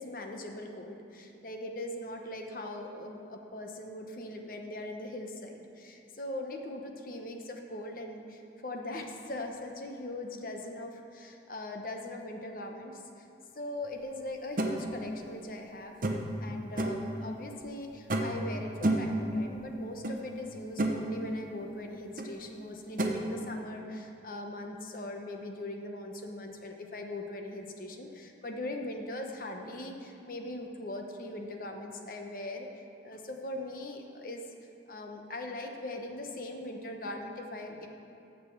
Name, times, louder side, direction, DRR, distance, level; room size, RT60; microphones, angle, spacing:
voice 1, 0.0-13.2 13.5-15.9 16.4-32.7 33.0-34.4 34.9-37.9, left 1 dB, 50° left, 3 dB, 1.0 m, -40 dB
sound 1, 14.6-14.7 16.0-16.4 16.8-17.1 18.1-18.4 18.8-19.2 20.0-20.2 20.5-21.0 22.2-22.3 23.0-23.2, right 1 dB, 45° right, 0.8 m, -29 dB
8.8 x 6.7 x 7.3 m, 2.7 s
head